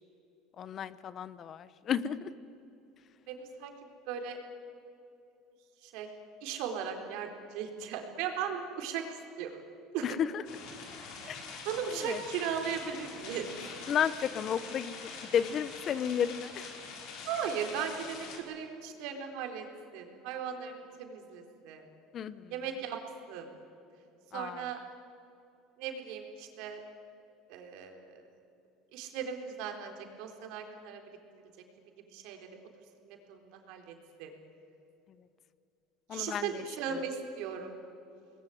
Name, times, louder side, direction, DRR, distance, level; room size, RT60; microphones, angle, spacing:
voice 1, 0.6-2.3 10.0-10.4 11.3-11.4 12.0-12.2 13.9-16.7 22.1-22.5 24.3-24.7 36.1-36.6 36.9-37.0, left 8 dB, 40° left, 16 dB, 0.9 m, -33 dB
voice 2, 3.3-3.7 4.1-4.4 5.8-6.1 6.4-9.6 9.9-10.1 11.2-11.4 11.7-13.5 17.3-19.6 19.9-21.8 22.5-23.0 23.3-23.5 24.3-24.8 25.8-26.8 27.5-28.2 28.9-31.0 32.1-32.5 33.0-34.3 36.1-37.7, right 7 dB, 70° right, 4 dB, 4.1 m, -37 dB
sound 1, 10.4-18.4, left 5 dB, 60° left, 5.3 m, -44 dB
26.5 x 21.0 x 9.4 m, 2.7 s
cardioid pair, 135°, 0 cm